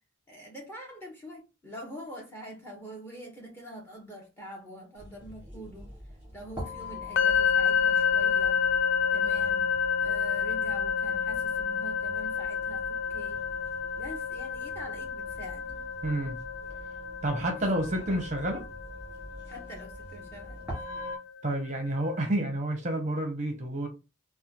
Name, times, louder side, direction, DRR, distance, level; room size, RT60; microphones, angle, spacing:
voice 1, 0.3-5.9 6.3-8.6 9.1-9.7 10.0-13.4 13.9-15.8 19.5-20.8, equal, 10° left, 1.0 m, -45 dB
sound 1, 5.0-21.2, left 4 dB, 10° right, 1.8 m, -42 dB
sound 2, 7.2-21.0, left 6 dB, 55° left, 0.3 m, -29 dB
voice 2, 16.0-16.4 17.2-18.6 21.4-23.9, right 1 dB, 35° right, 0.7 m, -29 dB
4.1 x 2.3 x 2.8 m
head